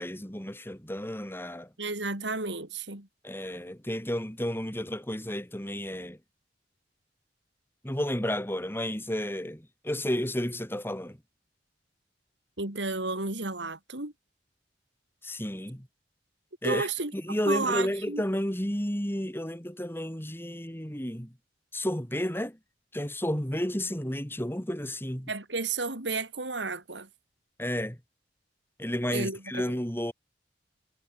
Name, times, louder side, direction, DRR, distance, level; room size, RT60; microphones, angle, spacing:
voice 1, 0.0-1.7 3.2-6.2 7.8-11.2 15.2-15.9 16.6-16.9 17.1-21.4 21.7-22.6 22.9-25.3 27.6-28.0 28.8-30.1, left 1 dB, 15° left, 3.6 m, -32 dB
voice 2, 1.8-3.1 12.6-14.1 16.6-17.1 17.5-18.2 25.3-27.1 29.1-29.4, right 3 dB, 85° right, 4.9 m, -32 dB
head